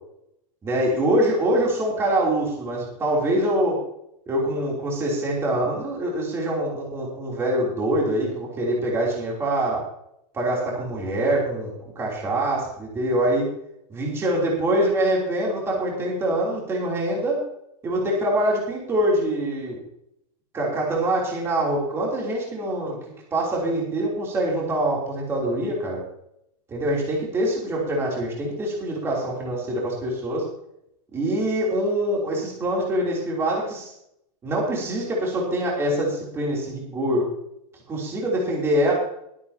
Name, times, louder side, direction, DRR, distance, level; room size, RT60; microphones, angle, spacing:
voice 1, 0.6-3.8 4.3-9.8 10.3-13.5 13.9-17.4 17.8-19.8 20.5-23.0 23.3-26.0 26.7-30.5 31.1-33.9 34.4-37.2 37.9-38.9, right 1 dB, 15° right, -3 dB, 3.3 m, -24 dB
22.0 x 8.8 x 2.9 m, 0.77 s
supercardioid pair, 175°, 20 cm